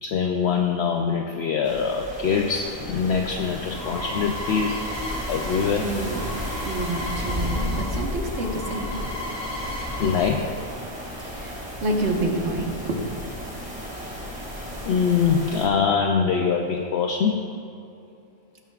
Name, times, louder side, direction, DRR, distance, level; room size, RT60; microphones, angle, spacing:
voice 1, 0.0-4.8 5.3-5.9 10.0-10.5 14.8-17.4, left 6 dB, 65° left, 3 dB, 0.8 m, -23 dB
sound 1, 1.6-15.7, equal, 5° right, 2.2 m, -33 dB
sound 2, 3.5-8.0 8.3-10.3, left 1 dB, 20° left, 1.8 m, -35 dB
voice 2, 5.8-6.3 6.6-8.9 11.2-13.0, right 2 dB, 70° right, 0 dB, 1.6 m, -28 dB
16.5 x 9.2 x 2.4 m, 2.6 s
omnidirectional pair, 1.2 m